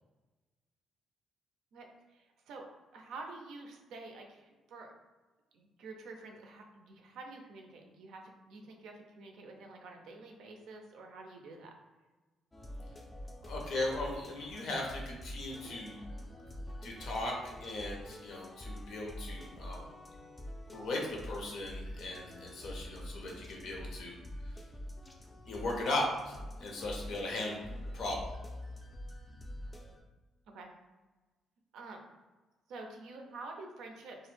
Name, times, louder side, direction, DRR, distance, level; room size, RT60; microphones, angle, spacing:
voice 1, 2.1-2.7 2.9-4.9 5.5-11.7 27.5-27.7 30.5-30.7 31.7-32.0 32.7-34.2, right 3 dB, 80° right, 2 dB, 0.4 m, -48 dB
sound 1, 12.5-30.0, left 1 dB, 20° left, 0.4 m, -46 dB
voice 2, 13.5-16.0 16.8-19.8 20.7-24.2 25.5-27.7 27.9-28.3, left 2 dB, 70° left, -1 dB, 0.6 m, -37 dB
2.2 x 2.0 x 3.1 m, 1.2 s
cardioid pair, 90°, 0 cm